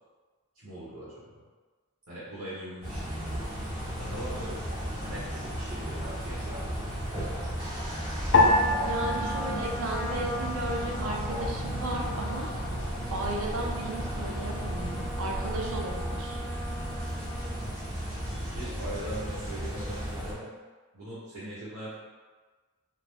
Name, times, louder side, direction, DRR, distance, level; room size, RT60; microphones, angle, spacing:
voice 1, 0.6-1.4 2.1-4.6 5.0-6.9 7.4-7.9 18.4-20.5 20.9-21.9, right 1 dB, 90° right, -11 dB, 1.0 m, -42 dB
sound 1, 2.8-20.3, equal, 30° right, 0.9 m, -34 dB
Trumpet, 8.3-17.6, left 1 dB, 85° left, 0.7 m, -41 dB
sound 2, 8.3-10.9 11.1-12.0 12.6-13.1, left 2 dB, 50° left, 0.3 m, -27 dB
voice 2, 8.8-12.5 13.1-16.4, right 1 dB, 70° right, 0 dB, 0.5 m, -35 dB
2.5 x 2.0 x 3.3 m, 1.4 s
head